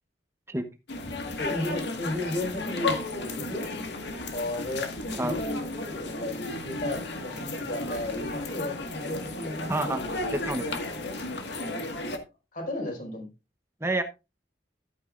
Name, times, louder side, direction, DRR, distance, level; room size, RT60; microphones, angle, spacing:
sound 1, 0.9-12.2, left 2 dB, 80° left, 1.8 m, -34 dB
voice 1, 1.4-3.7 4.3-10.4 12.5-13.3, left 1 dB, 50° left, 1 dB, 5.0 m, -34 dB
voice 2, 9.7-10.0 10.3-10.8 13.8-14.0, right 2 dB, 15° right, 8 dB, 0.9 m, -28 dB
13.0 x 9.0 x 2.5 m, 0.27 s
head